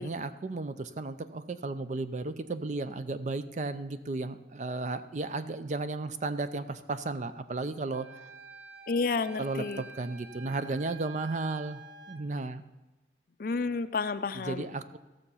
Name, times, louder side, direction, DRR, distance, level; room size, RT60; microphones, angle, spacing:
voice 1, 0.0-8.1 9.4-11.8 12.1-12.6 14.3-15.0, right 3 dB, 40° right, 12 dB, 0.5 m, -34 dB
Wind instrument woodwind instrument, 7.9-12.2, right 5 dB, 75° right, 0.9 m, -48 dB
voice 2, 8.9-9.8 13.4-14.7, left 4 dB, 50° left, 10 dB, 0.5 m, -31 dB
14.5 x 6.6 x 5.6 m, 1.1 s
head